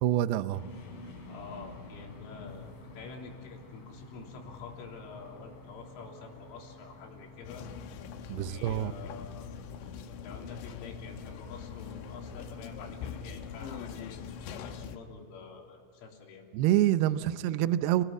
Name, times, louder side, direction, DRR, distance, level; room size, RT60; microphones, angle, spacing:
voice 1, 0.0-0.6 8.3-8.9 16.5-18.0, right 13 dB, 90° right, 13 dB, 2.2 m, -26 dB
sound 1, 0.5-14.8, left 3 dB, 45° left, 4.9 m, -52 dB
voice 2, 1.3-7.6 8.3-9.5 9.8-9.9 10.2-16.5 17.2-17.4, left 5 dB, 90° left, 0 dB, 5.9 m, -47 dB
sound 2, 2.0-7.5, left 1 dB, 70° right, 8.4 m, -56 dB
sound 3, 7.4-15.0, left 7 dB, 75° left, 3.3 m, -42 dB
29.5 x 19.0 x 8.3 m, 2.4 s
omnidirectional pair, 5.5 m